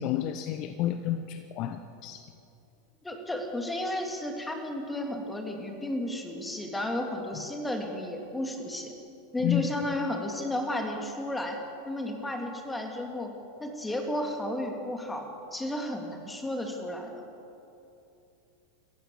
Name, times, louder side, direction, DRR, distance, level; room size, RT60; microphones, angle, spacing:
voice 1, 0.0-2.2 7.3-7.4 9.4-9.7, left 12 dB, 40° left, 9 dB, 0.9 m, -30 dB
voice 2, 3.0-8.9 9.3-11.6 11.8-13.3 13.6-15.2 15.5-17.2, left 1 dB, 10° left, 3 dB, 3.2 m, -33 dB
27.5 x 15.0 x 7.1 m, 2.8 s
figure-of-eight pair, 85°, 0 cm